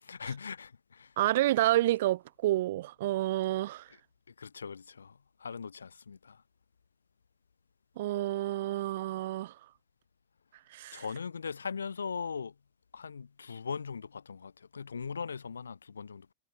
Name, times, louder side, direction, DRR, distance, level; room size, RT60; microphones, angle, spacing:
voice 1, 0.0-1.1 4.4-6.4 10.9-12.5 12.9-16.3, left 6 dB, 75° left, 2.5 m, -40 dB
voice 2, 1.2-3.9 8.0-9.5 10.7-11.0, right 15 dB, 55° right, 0.7 m, -29 dB
figure-of-eight pair, 90°, 0 cm